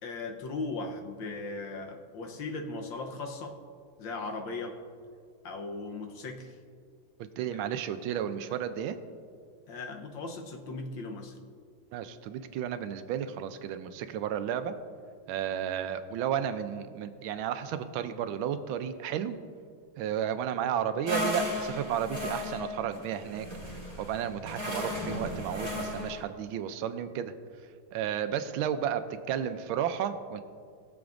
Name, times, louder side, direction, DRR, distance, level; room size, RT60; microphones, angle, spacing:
voice 1, 0.0-3.6 4.0-4.8 5.4-6.5 9.7-11.4, left 3 dB, 70° left, 3 dB, 1.6 m, -38 dB
voice 2, 7.2-9.0 11.9-14.7 15.3-19.4 20.0-27.3 27.9-29.0 29.3-30.4, right 9 dB, 80° right, 10 dB, 1.4 m, -33 dB
sound 1, 21.1-26.2, left 1 dB, 15° right, 1.9 m, -35 dB
20.5 x 7.0 x 2.5 m, 2.1 s
omnidirectional pair, 2.2 m